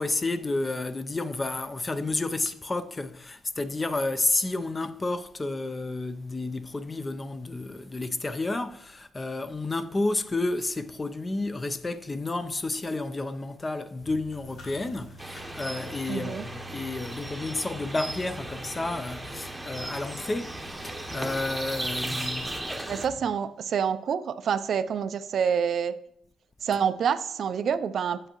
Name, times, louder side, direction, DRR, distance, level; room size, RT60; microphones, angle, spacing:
voice 1, 0.0-22.7, left 2 dB, 25° left, 0.5 m, -31 dB
sound 1, 14.0-23.2, equal, 65° left, 3.3 m, -46 dB
Birdsong hermitage of braid, 15.2-23.1, right 1 dB, 10° right, 0.9 m, -37 dB
voice 2, 16.1-16.4 22.9-26.0 26.6-28.3, right 7 dB, 60° right, 0.4 m, -27 dB
7.7 x 7.7 x 3.0 m
cardioid pair, 90°, 0 cm